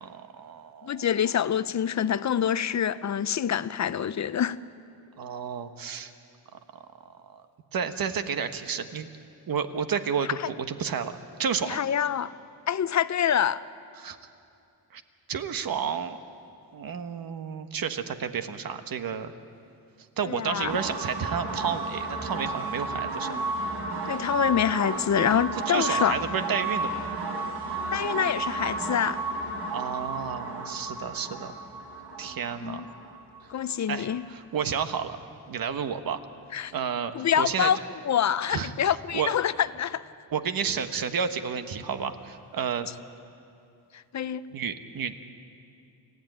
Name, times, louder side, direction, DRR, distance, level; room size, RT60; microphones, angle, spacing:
voice 1, 0.0-1.1 5.2-6.1 7.3-7.4 7.7-9.1 9.5-11.1 11.4-11.8 14.0-14.2 14.9-15.0 15.3-16.2 16.7-19.3 20.2-23.5 25.7-27.0 29.7-31.5 32.2-32.9 33.9-35.2 35.5-36.2 36.7-37.7 38.5-39.3 40.3-42.9 44.5-45.2, right 7 dB, 60° right, 1.3 m, -31 dB
voice 2, 0.8-4.6 11.7-12.3 12.7-13.6 20.3-20.8 24.1-26.1 27.9-29.2 32.6-32.8 33.5-34.2 36.5-36.7 37.1-37.8 38.0-40.0 43.9-44.4, left 9 dB, 45° left, 0.6 m, -26 dB
sound 1, 20.6-34.2, right 2 dB, 85° right, 4.5 m, -33 dB
29.0 x 14.5 x 9.3 m
wide cardioid pair, 145°, 39 cm